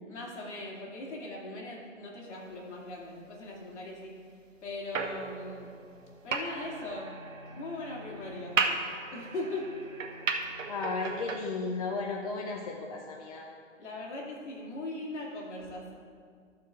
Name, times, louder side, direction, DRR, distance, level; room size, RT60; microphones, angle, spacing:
voice 1, 0.1-4.1 4.6-5.7 6.2-7.1 7.5-8.8 9.1-9.8 13.8-15.9, left 2 dB, 60° left, -3 dB, 2.6 m, -39 dB
sound 1, 4.9-11.4, right 4 dB, 75° right, 1.2 m, -35 dB
voice 2, 10.7-13.5, left 3 dB, 30° left, 0 dB, 0.6 m, -34 dB
13.5 x 4.8 x 4.6 m, 2.1 s
hypercardioid pair, 155°, 39 cm